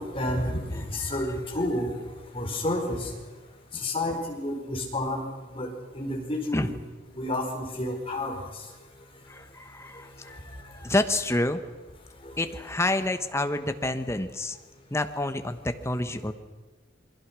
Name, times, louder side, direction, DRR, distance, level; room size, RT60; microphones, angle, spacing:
voice 1, 0.0-1.9 2.3-3.1 3.7-5.2 5.5-5.7 5.9-6.7 7.1-8.4 12.2-12.3, left 1 dB, 30° left, 1 dB, 5.0 m, -30 dB
voice 2, 9.3-11.6 12.4-14.6 14.9-16.3, left 1 dB, 15° left, 8 dB, 1.1 m, -28 dB
28.0 x 22.0 x 6.3 m, 1.2 s
head